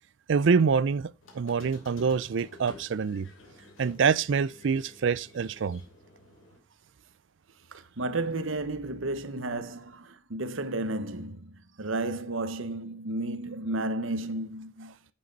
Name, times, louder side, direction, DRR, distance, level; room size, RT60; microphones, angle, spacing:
voice 1, 0.3-3.3 3.8-5.8, right 5 dB, 65° right, 0.4 m, -26 dB
Squeak, 1.2-6.6, left 2 dB, 85° left, 2.9 m, -52 dB
voice 2, 7.7-14.9, right 2 dB, 85° right, 1.1 m, -33 dB
9.2 x 7.6 x 4.1 m
head